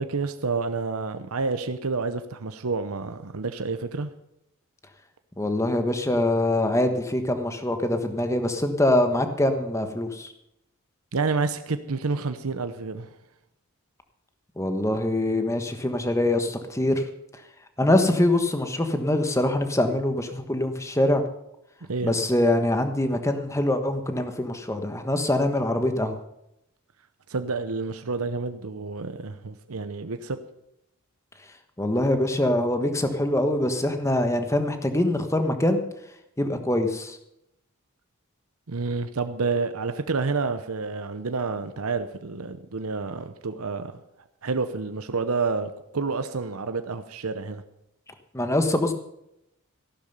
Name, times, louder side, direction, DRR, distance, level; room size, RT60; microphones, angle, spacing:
voice 1, 0.0-4.1 11.1-13.1 21.9-22.1 27.3-30.4 38.7-44.0 44.4-47.6, right 4 dB, 85° right, 9 dB, 0.8 m, -29 dB
voice 2, 5.4-10.3 14.6-17.1 17.8-21.2 22.0-26.2 31.8-35.8 36.4-37.2 48.3-48.9, left 1 dB, 15° left, 7 dB, 1.3 m, -24 dB
14.5 x 12.0 x 5.5 m, 0.82 s
head